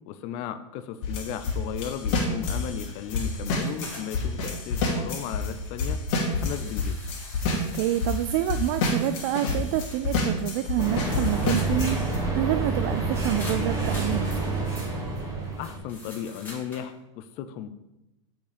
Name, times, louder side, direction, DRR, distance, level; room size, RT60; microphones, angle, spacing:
voice 1, 0.0-6.0 6.3-7.0 15.6-17.7, left 9 dB, 45° left, 11 dB, 0.5 m, -35 dB
sound 1, 1.0-5.5 5.8-8.2 8.5-12.2, left 3 dB, 60° left, 2.2 m, -28 dB
sound 2, 3.6-4.4 4.8-4.9 5.4-10.0 10.4-10.5 10.8-12.1 12.4-12.5 13.4-14.2 15.9-16.9, left 1 dB, 10° left, 2.3 m, -45 dB
voice 2, 7.7-14.3, right 13 dB, 50° right, 10 dB, 0.4 m, -28 dB
sound 3, 10.8-15.8, right 3 dB, 15° right, 2.6 m, -28 dB
7.6 x 4.7 x 5.1 m, 0.95 s
supercardioid pair, 140°, 17 cm